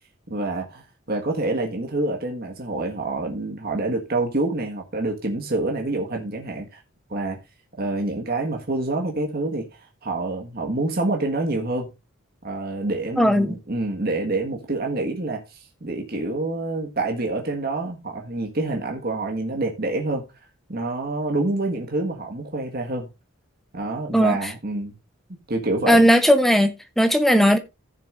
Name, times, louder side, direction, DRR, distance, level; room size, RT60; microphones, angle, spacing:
voice 1, 0.3-6.8 7.1-7.4 7.8-9.6 10.0-11.9 12.4-20.2 20.7-23.1 23.7-24.9 25.5-26.0, right 2 dB, 45° right, 1.6 m, -27 dB
voice 2, 13.2-13.6 24.1-24.4 25.9-27.6, equal, ahead, 0.8 m, -17 dB
15.0 x 6.7 x 2.5 m
head